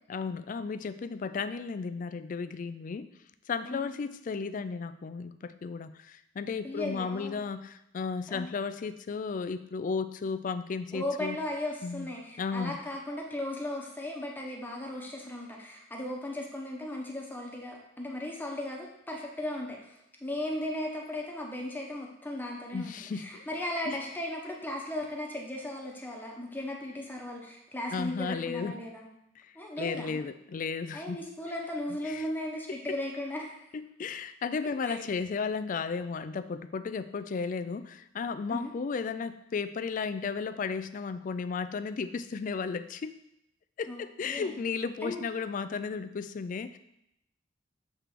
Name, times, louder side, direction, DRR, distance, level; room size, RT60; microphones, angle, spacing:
voice 1, 0.1-3.1 3.5-11.4 11.8-12.1 12.4-12.8 22.7-23.4 23.9-24.0 27.9-28.8 29.4-31.2 32.0-32.3 33.7-43.1 43.8-46.8, left 5 dB, 45° left, 12 dB, 0.3 m, -34 dB
voice 2, 6.6-7.4 8.3-8.5 10.9-29.1 29.5-30.2 30.9-33.5 34.8-35.0 38.5-38.7 43.9-44.6 45.0-45.2, left 1 dB, 10° left, -1 dB, 0.9 m, -36 dB
7.5 x 3.3 x 5.0 m, 0.81 s
head